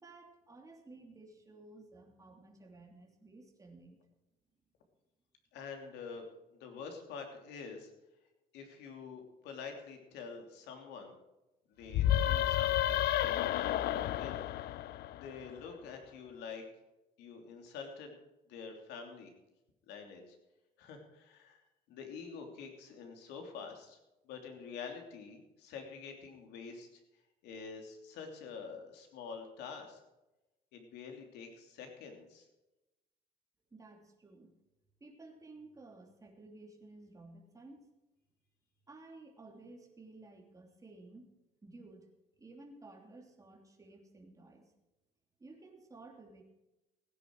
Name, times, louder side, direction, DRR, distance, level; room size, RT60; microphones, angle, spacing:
voice 1, 0.0-4.0 33.7-34.5 35.0-37.9 38.9-41.3 41.6-42.0 42.4-44.7 45.4-46.4, right 2 dB, 20° right, 2 dB, 2.9 m, -54 dB
voice 2, 5.5-6.3 6.5-7.9 8.5-11.1 11.8-14.4 15.1-16.6 17.2-18.1 18.5-19.3 19.9-20.4 20.8-21.6 21.9-24.0 24.2-27.0 27.4-30.0 30.7-32.5, left 5 dB, 90° left, 4 dB, 3.0 m, -47 dB
sound 1, 11.9-15.5, left 12 dB, 70° left, 0.6 m, -31 dB
16.5 x 10.5 x 4.7 m, 0.99 s
cardioid pair, 110°, 17 cm